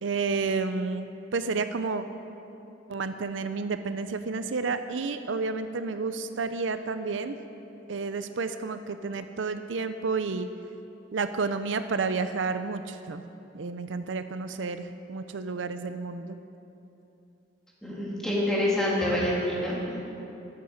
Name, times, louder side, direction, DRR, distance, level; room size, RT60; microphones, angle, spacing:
voice 1, 0.0-2.0 2.9-7.4 7.9-10.5 11.1-13.2 13.5-16.4, right 4 dB, 75° right, 10 dB, 0.6 m, -31 dB
voice 2, 17.8-20.0, left 1 dB, 5° left, -6 dB, 3.0 m, -27 dB
13.0 x 10.5 x 7.1 m, 2.9 s
head